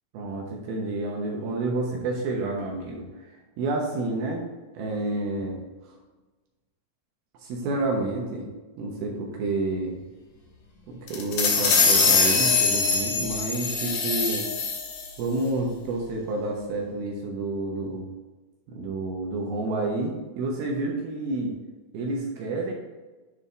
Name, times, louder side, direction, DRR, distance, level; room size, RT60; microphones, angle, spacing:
voice 1, 0.1-4.4 4.7-5.6 7.4-8.5 8.8-10.0 10.9-14.5 15.2-18.1 18.7-21.5 21.9-22.7, right 2 dB, 75° right, -1 dB, 2.8 m, -29 dB
sound 1, 11.1-15.1, left 5 dB, 65° left, 2.4 m, -22 dB
9.5 x 4.1 x 3.7 m, 1.2 s
omnidirectional pair, 4.5 m